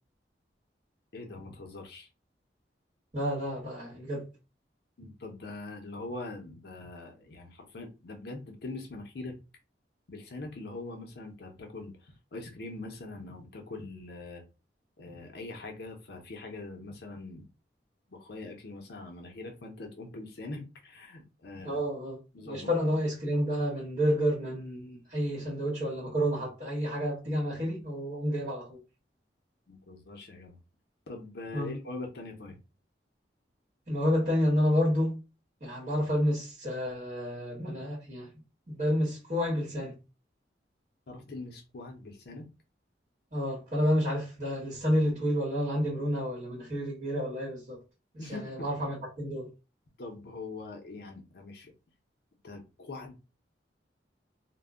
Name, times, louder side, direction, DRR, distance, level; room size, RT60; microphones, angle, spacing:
voice 1, 1.1-2.1 5.0-9.4 10.1-14.4 15.0-17.4 18.1-21.8 22.3-22.9 29.7-30.6 31.1-32.6 41.1-42.5 48.2-48.7 50.0-51.7 52.4-53.1, left 2 dB, 60° left, 0.5 m, -42 dB
voice 2, 3.1-4.3 21.6-22.2 22.4-28.8 31.5-31.7 33.9-35.2 35.6-38.3 38.7-40.0 43.3-47.8 48.1-49.5, equal, 45° right, 1.0 m, -30 dB
2.1 x 2.0 x 3.5 m
head